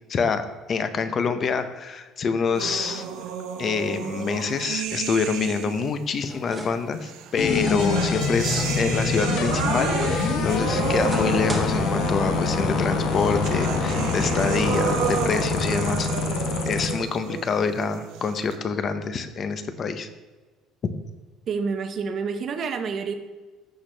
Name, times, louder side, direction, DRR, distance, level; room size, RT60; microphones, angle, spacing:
voice 1, 0.1-0.4 0.7-3.0 3.6-16.1 16.6-20.1, left 5 dB, 30° left, 10 dB, 0.6 m, -26 dB
sound 1, 2.6-6.0 7.0-18.6, right 7 dB, 70° right, 0.9 m, -31 dB
sound 2, 5.7-15.2, right 1 dB, 10° right, 1.2 m, -41 dB
sound 3, 7.4-16.9, left 4 dB, 55° left, 1.1 m, -25 dB
voice 2, 21.5-23.1, right 5 dB, 35° right, 8 dB, 0.7 m, -28 dB
14.5 x 6.0 x 3.3 m, 1.3 s
cardioid pair, 180°, 0 cm